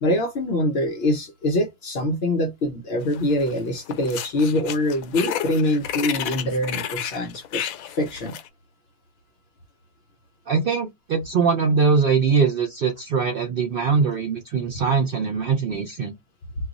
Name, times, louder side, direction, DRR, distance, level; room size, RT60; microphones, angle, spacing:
voice 1, 0.0-7.6 8.0-8.4, left 1 dB, 60° left, 0.7 m, -24 dB
sound 1, 3.1-3.6 3.9-8.5, left 10 dB, 80° left, 1.0 m, -31 dB
voice 2, 10.5-16.1, right 5 dB, 65° right, 0.5 m, -22 dB
2.4 x 2.3 x 3.8 m
omnidirectional pair, 1.5 m